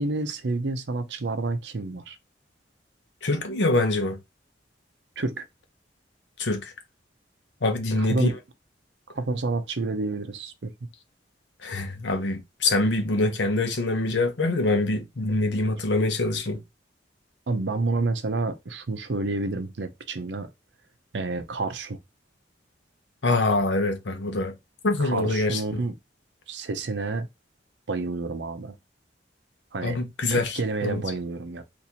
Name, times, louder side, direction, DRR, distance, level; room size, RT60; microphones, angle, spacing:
voice 1, 0.0-2.2 5.2-5.5 8.0-8.3 9.1-10.7 17.5-20.5 21.1-22.0 25.0-25.9 26.5-27.3 27.9-28.8 29.7-30.0 30.3-31.6, right 3 dB, 70° right, 0.6 m, -29 dB
voice 2, 3.2-4.2 6.4-6.7 7.6-8.4 11.6-16.6 23.2-24.5 24.8-25.8 29.8-31.0, left 2 dB, 75° left, 0.8 m, -25 dB
4.0 x 2.6 x 2.8 m
head